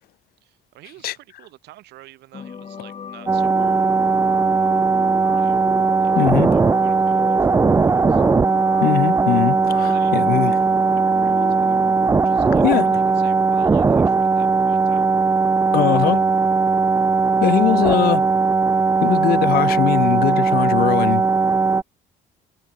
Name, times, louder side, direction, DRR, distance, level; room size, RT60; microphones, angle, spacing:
voice 1, 0.4-3.9 5.3-5.6 6.0-6.1 6.5-8.2 9.9-10.1 10.9-11.8 12.2-15.0, right 17 dB, 80° right, 3.3 m, -47 dB
sound 1, 2.3-13.0, left 7 dB, 35° left, 1.8 m, -35 dB
sound 2, 3.3-21.8, right 4 dB, 15° right, 0.4 m, -18 dB
voice 2, 6.2-6.5 8.8-10.6 12.6-12.9 15.7-16.3 17.4-18.2 19.0-21.2, left 15 dB, 65° left, 0.6 m, -20 dB
cardioid pair, 110°, 17 cm